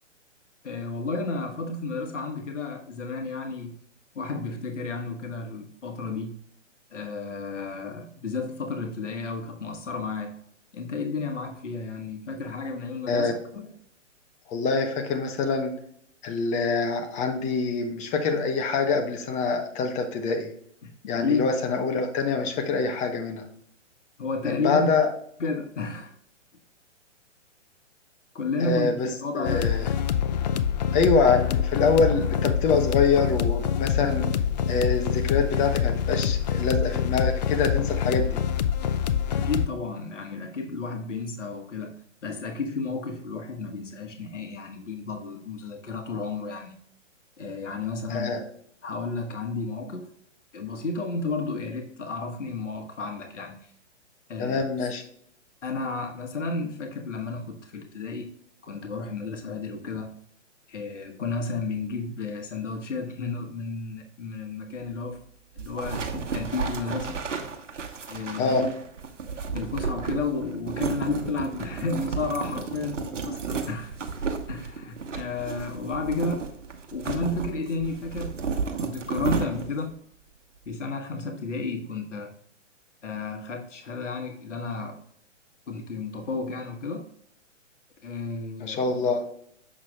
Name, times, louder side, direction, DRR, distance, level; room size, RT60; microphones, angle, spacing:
voice 1, 0.6-3.8 4.1-6.4 6.9-10.3 10.7-13.7 20.8-20.9 21.2-21.5 24.2-25.0 25.4-26.1 28.3-29.7 39.3-41.9 42.2-46.8 47.4-48.4 48.8-50.1 50.5-53.5 54.3-54.9 55.6-58.3 58.6-60.1 60.7-65.2 65.5-67.2 68.1-68.7 69.5-74.0 74.5-76.5 76.9-78.4 78.8-80.0 80.7-82.3 83.0-85.0 85.7-87.1 88.0-88.9, left 3 dB, 75° left, 3 dB, 1.3 m, -32 dB
voice 2, 14.5-15.7 16.2-20.5 21.1-23.4 24.4-25.1 28.6-29.1 29.3-29.9 30.9-34.3 34.7-38.4 48.1-48.4 54.4-55.0 68.4-68.6 88.6-89.2, left 4 dB, 20° left, 4 dB, 1.0 m, -25 dB
sound 1, 29.4-39.7, left 8 dB, 35° left, 0.4 m, -25 dB
sound 2, 65.6-79.9, right 5 dB, 80° right, 1.2 m, -32 dB
7.3 x 6.2 x 2.3 m, 0.66 s
hypercardioid pair, 130°, 37 cm